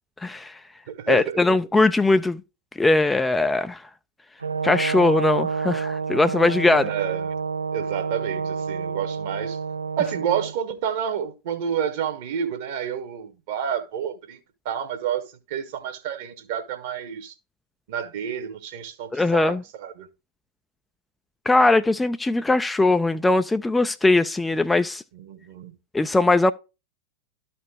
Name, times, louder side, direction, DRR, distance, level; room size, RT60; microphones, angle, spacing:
voice 1, 0.2-0.6 1.1-2.4 2.8-3.8 4.6-6.9 19.1-19.6 21.5-25.0 25.9-26.5, left 2 dB, 10° left, 0.4 m, -20 dB
voice 2, 0.9-1.6 6.7-7.4 7.7-9.6 10.0-14.4 14.6-17.3 17.9-20.1 25.1-25.8, right 8 dB, 50° right, 1.4 m, -29 dB
Brass instrument, 4.4-10.5, right 5 dB, 75° right, 0.3 m, -28 dB
13.0 x 4.3 x 3.4 m
figure-of-eight pair, 90°, 0 cm